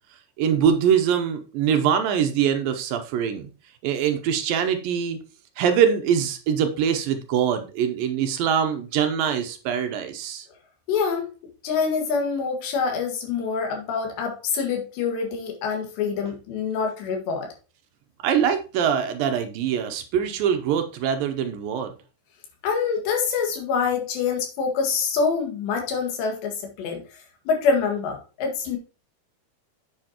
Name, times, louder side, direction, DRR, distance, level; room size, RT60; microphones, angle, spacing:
voice 1, 0.4-3.5 3.8-5.2 5.6-10.5 18.2-21.9, right 8 dB, 75° right, 7 dB, 2.1 m, -23 dB
voice 2, 10.9-11.3 11.6-17.5 22.6-27.2 27.5-28.8, left 5 dB, 85° left, 2 dB, 4.0 m, -25 dB
8.7 x 7.7 x 2.9 m, 0.34 s
omnidirectional pair, 4.8 m